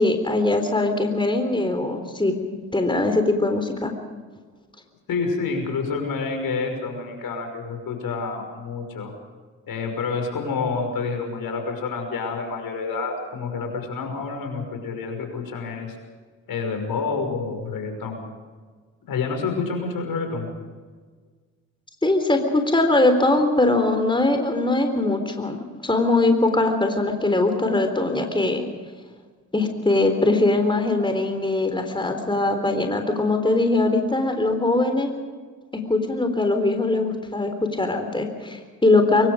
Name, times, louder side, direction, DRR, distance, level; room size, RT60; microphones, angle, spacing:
voice 1, 0.0-2.3 2.7-3.9 22.0-28.6 29.5-35.1 35.7-39.3, left 2 dB, 10° left, 5 dB, 3.8 m, -21 dB
voice 2, 5.1-9.1 9.7-16.0 16.5-18.2 19.1-20.5, left 4 dB, 60° left, 4 dB, 5.8 m, -28 dB
24.0 x 22.0 x 5.1 m, 1.5 s
hypercardioid pair, 45°, 38 cm